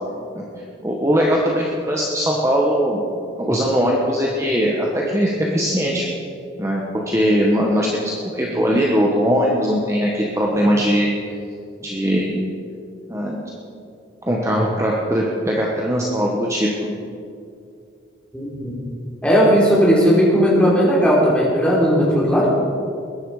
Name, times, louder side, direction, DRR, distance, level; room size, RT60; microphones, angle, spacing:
voice 1, 0.8-3.0 3.4-6.0 6.6-11.1 11.8-12.4 13.1-13.4 14.2-17.0, equal, 15° right, -3 dB, 1.3 m, -20 dB
voice 2, 18.3-18.7 19.2-22.5, equal, 5° left, -6 dB, 3.7 m, -16 dB
20.5 x 11.0 x 4.9 m, 2.5 s
head